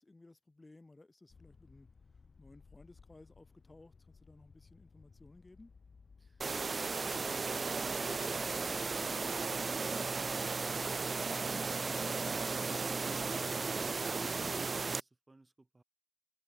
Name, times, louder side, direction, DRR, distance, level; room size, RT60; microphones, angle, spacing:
voice 1, 0.0-1.9 2.4-5.7, left 2 dB, 40° left, 1.6 m, -58 dB
sound 1, 1.3-14.9, left 5 dB, 90° left, 6.3 m, -62 dB
voice 2, 6.2-6.3, right 2 dB, 35° right, 2.3 m, -63 dB
sound 2, 6.4-15.0, right 4 dB, 75° right, 0.3 m, -35 dB
wide cardioid pair, 70°, 0 cm